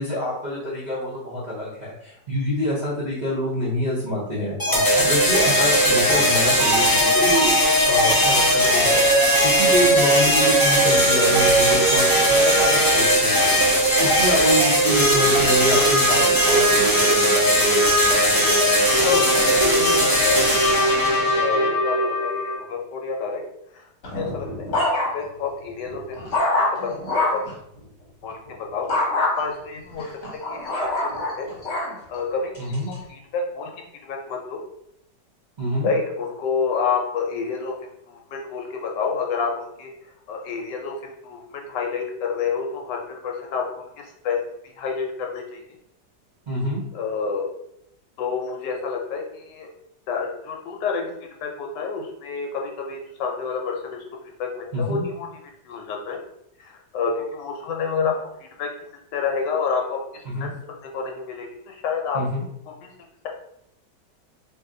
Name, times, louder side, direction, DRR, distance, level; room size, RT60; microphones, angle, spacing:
voice 1, 0.0-17.6 32.6-32.9 35.6-35.9 46.5-46.8 54.7-55.0 60.3-60.5 62.1-62.4, equal, 55° right, -9 dB, 0.4 m, -26 dB
sound 1, 4.6-22.6, equal, 20° left, 0.6 m, -18 dB
voice 2, 19.0-20.7 20.9-23.4 23.7-24.7 24.9-26.9 27.3-27.4 28.2-28.9 29.3-30.1 30.5-31.1 31.4-31.5 31.9-33.7 34.1-34.6 35.8-37.7 38.1-39.9 40.3-43.8 44.2-45.6 46.9-47.5 48.2-49.7 50.1-51.1 51.4-54.0 54.4-55.3 55.6-56.2 56.6-58.1 58.4-58.7 59.1-60.0 60.4-62.2 62.7-62.9, left 5 dB, 80° left, 1 dB, 1.2 m, -29 dB
sound 2, 24.0-25.4 25.8-27.5 28.9-29.3 30.0-31.9 32.5-32.9, left 2 dB, 45° left, 1.1 m, -24 dB
2.7 x 2.7 x 3.7 m, 0.76 s
omnidirectional pair, 1.9 m